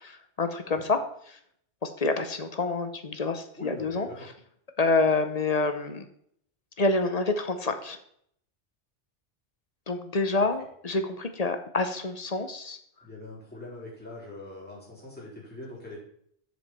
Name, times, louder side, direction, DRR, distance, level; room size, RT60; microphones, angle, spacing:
voice 1, 0.0-1.0 1.3-1.4 1.8-4.1 4.8-6.1 6.8-8.0 9.9-12.8, left 3 dB, 40° left, 8 dB, 0.8 m, -27 dB
voice 2, 3.6-4.3 13.0-16.0, left 2 dB, 10° left, -8 dB, 4.2 m, -43 dB
7.2 x 7.2 x 4.3 m, 0.67 s
omnidirectional pair, 1.2 m